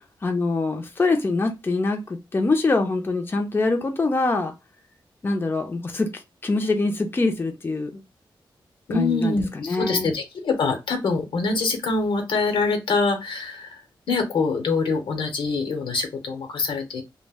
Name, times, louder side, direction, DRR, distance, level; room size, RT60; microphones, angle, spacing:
voice 1, 0.2-4.5 5.2-8.0 8.9-10.1, left 3 dB, 25° left, 0.5 m, -24 dB
voice 2, 8.9-13.8 14.1-17.0, left 3 dB, 80° left, 0.8 m, -24 dB
2.3 x 2.1 x 3.3 m
wide cardioid pair, 95°, 9 cm